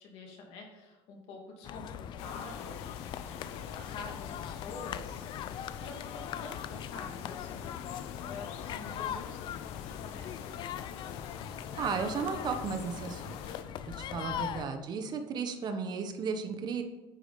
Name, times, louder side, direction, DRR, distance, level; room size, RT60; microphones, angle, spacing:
voice 1, 0.0-2.8 3.2-7.9 8.2-9.5 9.8-10.6 14.2-14.6, left 3 dB, 70° left, 0 dB, 2.5 m, -47 dB
sound 1, 1.6-14.7, left 9 dB, 50° left, 0.5 m, -41 dB
sound 2, 2.2-13.6, left 8 dB, 90° left, 0.9 m, -46 dB
voice 2, 11.8-13.4 13.9-16.8, right 5 dB, 45° right, 6 dB, 1.1 m, -34 dB
9.9 x 5.0 x 5.2 m, 1.2 s
cardioid pair, 140°, 10 cm